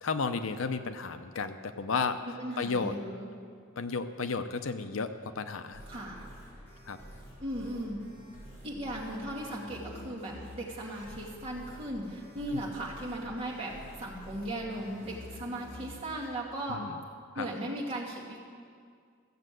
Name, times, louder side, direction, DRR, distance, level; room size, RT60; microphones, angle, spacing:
voice 1, 0.0-2.2 2.6-3.0 3.8-5.8 6.9-7.0 12.5-12.6 16.7-16.9 17.4-17.5, left 4 dB, 75° left, 10 dB, 0.6 m, -33 dB
voice 2, 2.4-3.3 5.9-6.3 7.4-8.0 8.6-13.7 14.0-16.8 17.3-18.4, right 1 dB, 30° right, -5 dB, 2.7 m, -37 dB
sound 1, 5.7-16.3, equal, 10° left, 4.4 m, -49 dB
15.0 x 7.5 x 7.7 m, 2.1 s
head